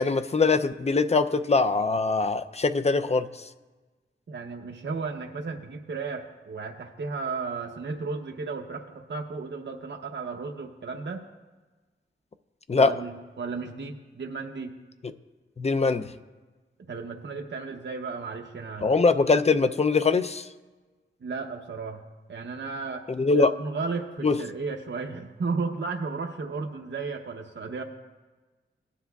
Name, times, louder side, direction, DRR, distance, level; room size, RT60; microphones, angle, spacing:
voice 1, 0.0-3.3 12.7-12.9 15.6-16.1 18.8-20.5 23.1-23.5 24.2-24.4, left 4 dB, 30° left, 10 dB, 0.5 m, -22 dB
voice 2, 4.3-11.2 12.7-14.7 16.9-18.9 21.2-22.0 22.3-23.1 23.4-27.8, right 4 dB, 60° right, 2 dB, 0.7 m, -34 dB
18.5 x 9.8 x 2.3 m, 1.3 s
wide cardioid pair, 85°, 21 cm